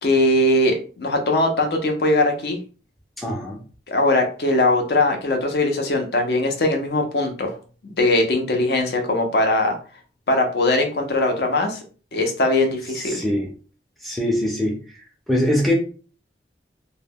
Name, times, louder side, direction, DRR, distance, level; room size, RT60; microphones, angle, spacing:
voice 1, 0.0-2.6 3.9-7.5 7.8-9.7 10.3-11.8 12.1-13.2, left 2 dB, 60° left, 4 dB, 0.5 m, -20 dB
voice 2, 3.2-3.6 13.0-13.5 14.0-14.8 15.3-15.7, left 1 dB, ahead, -1 dB, 0.4 m, -22 dB
2.1 x 2.0 x 3.4 m, 0.38 s
head